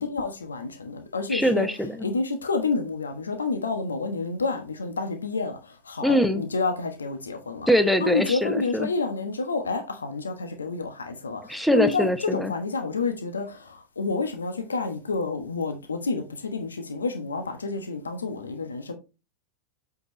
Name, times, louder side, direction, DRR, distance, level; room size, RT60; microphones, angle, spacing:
voice 1, 0.0-1.7 2.0-5.6 5.8-7.7 8.0-18.9, left 4 dB, 75° left, 1.2 m, -29 dB
voice 2, 1.3-2.0 6.0-6.4 7.7-8.9 11.5-12.5, equal, ahead, 0.9 m, -23 dB
8.0 x 5.3 x 3.0 m
figure-of-eight pair, 90°, 0 cm